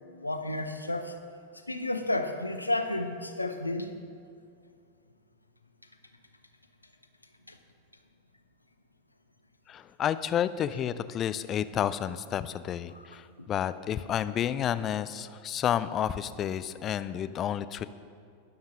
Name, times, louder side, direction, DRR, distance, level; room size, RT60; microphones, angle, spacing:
voice 1, 0.2-1.1 1.7-4.0 7.5-7.6, left 2 dB, 85° left, 7 dB, 0.8 m, -31 dB
voice 2, 9.7-17.8, left 10 dB, 30° left, 14 dB, 0.4 m, -30 dB
21.5 x 7.2 x 3.8 m, 2.3 s
figure-of-eight pair, 90°, 0 cm